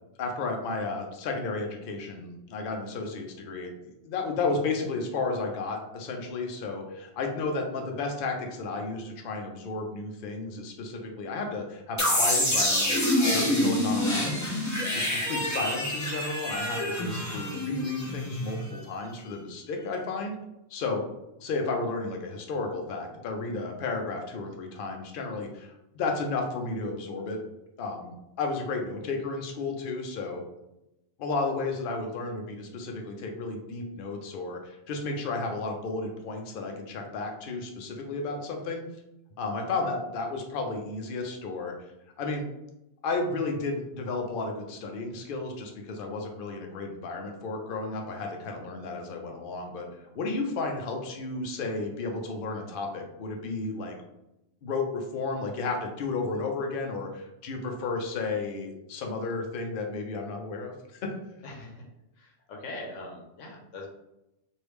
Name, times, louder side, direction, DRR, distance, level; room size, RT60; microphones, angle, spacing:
voice 1, 0.2-12.9 13.2-20.4 20.7-21.0 21.4-27.4 27.8-30.4 31.2-38.8 39.4-41.7 42.2-42.4 43.0-49.9 50.1-54.0 54.6-61.1, left 3 dB, 55° left, 3 dB, 0.7 m, -33 dB
sound 1, 12.0-18.8, left 1 dB, 20° left, 0.6 m, -27 dB
voice 2, 61.4-61.9 62.2-63.9, left 2 dB, 80° left, 0 dB, 1.1 m, -42 dB
3.4 x 2.6 x 3.0 m, 0.89 s
omnidirectional pair, 1.3 m